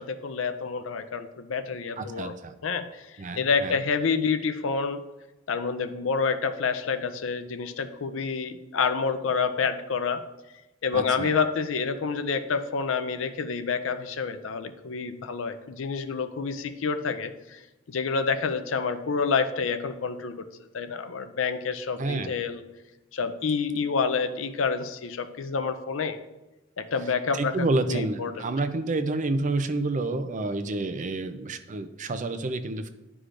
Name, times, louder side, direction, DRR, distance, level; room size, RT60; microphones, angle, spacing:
voice 1, 0.0-2.3 2.6-3.1 3.4-5.0 5.5-10.2 10.8-17.6 17.9-20.4 20.7-22.6 23.1-26.2 26.8-28.5, left 5 dB, 85° left, 9 dB, 0.5 m, -28 dB
voice 2, 2.0-2.5 3.2-3.8 10.9-11.3 22.0-22.3 27.3-32.9, right 2 dB, 40° right, 9 dB, 0.5 m, -29 dB
11.5 x 4.9 x 2.5 m, 1.0 s
head